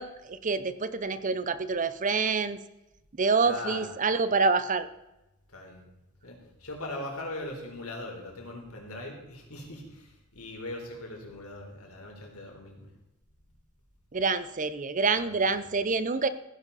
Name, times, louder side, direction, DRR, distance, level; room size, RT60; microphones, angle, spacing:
voice 1, 0.0-2.6 3.1-4.9 14.1-16.3, right 4 dB, 35° right, 14 dB, 0.7 m, -27 dB
voice 2, 3.4-3.9 5.5-5.8 6.2-12.9 15.2-15.6, left 1 dB, 85° left, 0 dB, 3.9 m, -40 dB
15.5 x 11.0 x 4.1 m, 0.94 s
head